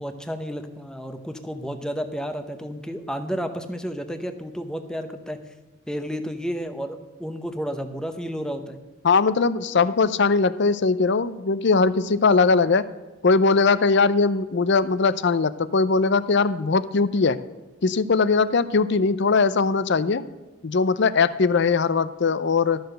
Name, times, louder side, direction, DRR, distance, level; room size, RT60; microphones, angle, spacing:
voice 1, 0.0-5.5 5.9-8.8, equal, 5° left, 7 dB, 0.8 m, -31 dB
voice 2, 9.0-12.8 13.2-17.4 17.8-20.2 20.6-22.8, left 4 dB, 55° left, 15 dB, 0.5 m, -20 dB
13.0 x 6.7 x 6.6 m, 1.2 s
head